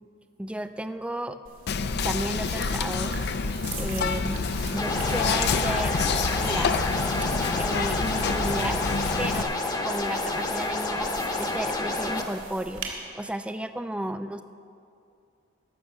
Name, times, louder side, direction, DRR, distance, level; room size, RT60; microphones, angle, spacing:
voice 1, 0.4-1.4 2.0-6.0 6.4-6.7 7.5-8.8 9.2-9.5 9.8-11.1 11.4-14.4, right 1 dB, 5° right, 10 dB, 0.3 m, -33 dB
sound 1, 1.4-12.9, right 3 dB, 70° right, 2.2 m, -42 dB
Whispering, 1.7-9.4, left 5 dB, 55° left, 0.5 m, -28 dB
sound 2, 4.8-12.2, left 2 dB, 20° left, 0.8 m, -29 dB
15.5 x 6.4 x 7.0 m, 2.5 s
head